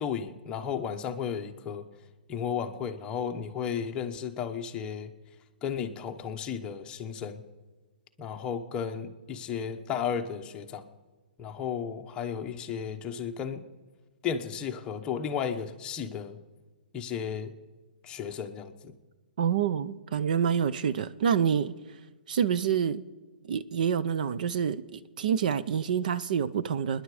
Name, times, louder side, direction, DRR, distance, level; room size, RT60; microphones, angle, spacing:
voice 1, 0.0-1.9 2.3-5.1 5.6-7.4 8.2-10.9 11.4-13.6 14.2-16.4 16.9-17.5 18.0-18.9, left 7 dB, 15° left, 0.9 m, -34 dB
voice 2, 19.4-21.7 22.3-23.0 23.4-27.0, right 8 dB, 55° right, 0.6 m, -27 dB
26.0 x 10.5 x 4.9 m
hypercardioid pair, 160°, 5 cm